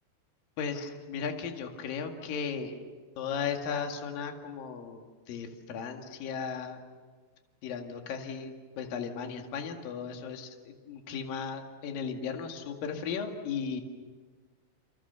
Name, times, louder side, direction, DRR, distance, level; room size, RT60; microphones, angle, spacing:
voice 1, 0.6-2.7 3.2-5.0 5.3-6.8 7.6-13.8, left 6 dB, 55° left, 4 dB, 3.2 m, -36 dB
30.0 x 28.0 x 6.9 m, 1.5 s
omnidirectional pair, 5.8 m